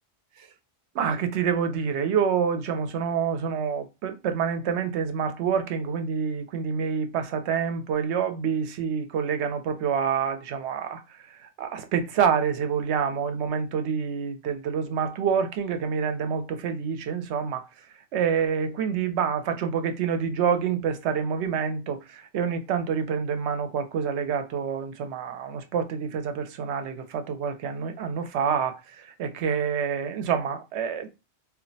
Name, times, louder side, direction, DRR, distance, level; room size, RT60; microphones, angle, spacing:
voice 1, 0.9-11.0 11.4-17.6 18.1-31.1, right 7 dB, 85° right, 0.9 m, -27 dB
2.4 x 2.1 x 3.9 m
omnidirectional pair, 1.1 m